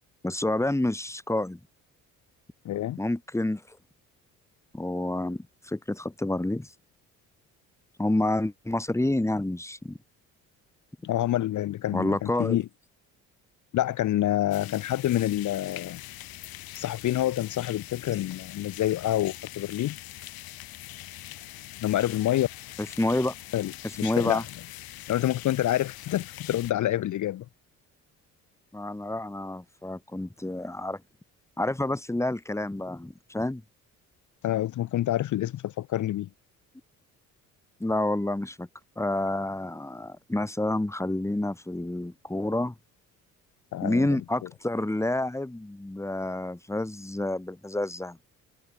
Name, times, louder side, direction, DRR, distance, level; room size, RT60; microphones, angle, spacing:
voice 1, 0.2-1.6 3.0-3.6 4.7-6.7 8.0-10.0 11.9-12.6 22.8-23.3 24.0-24.4 28.7-31.0 31.6-33.6 37.8-38.7 39.0-42.7 43.8-48.2, left 1 dB, 5° left, 1.8 m, -29 dB
voice 2, 2.6-3.0 11.0-12.7 13.7-16.0 16.7-20.0 21.8-22.5 23.5-24.4 25.1-27.5 34.4-36.3 43.7-44.2, left 13 dB, 55° left, 0.8 m, -27 dB
sound 1, 14.5-26.7, left 15 dB, 70° left, 2.1 m, -43 dB
hypercardioid pair, 60°, 38 cm